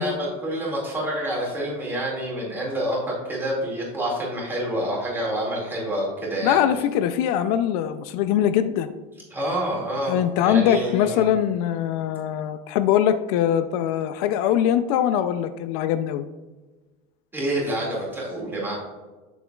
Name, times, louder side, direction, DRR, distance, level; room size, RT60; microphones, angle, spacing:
voice 1, 0.0-6.6 9.3-11.3 17.3-18.7, right 1 dB, 10° right, -4 dB, 2.0 m, -27 dB
voice 2, 6.4-8.9 10.1-16.3, left 10 dB, 70° left, 11 dB, 0.4 m, -22 dB
6.8 x 6.3 x 2.3 m, 1.2 s
cardioid pair, 155°, 20 cm